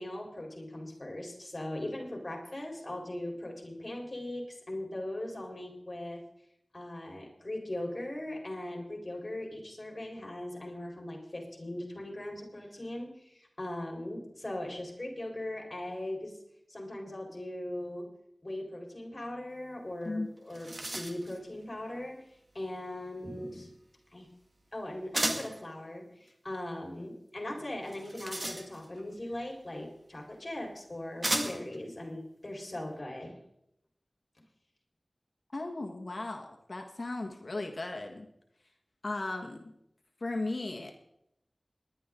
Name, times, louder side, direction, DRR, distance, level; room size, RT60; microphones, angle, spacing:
voice 1, 0.0-6.2 6.7-16.4 16.7-18.1 18.4-22.2 22.5-23.7 24.1-24.3 24.7-33.4, left 1 dB, 40° left, 0 dB, 4.4 m, -39 dB
sound 1, 20.0-20.1 20.4-21.4 25.1-25.6 27.8-29.0 30.1-30.2 31.2-31.8, right 1 dB, 50° right, 2.1 m, -34 dB
voice 2, 35.5-38.3 39.0-39.7 40.2-40.9, left 2 dB, 65° left, 3 dB, 1.5 m, -36 dB
19.5 x 11.5 x 3.8 m, 0.78 s
wide cardioid pair, 50°, 0 cm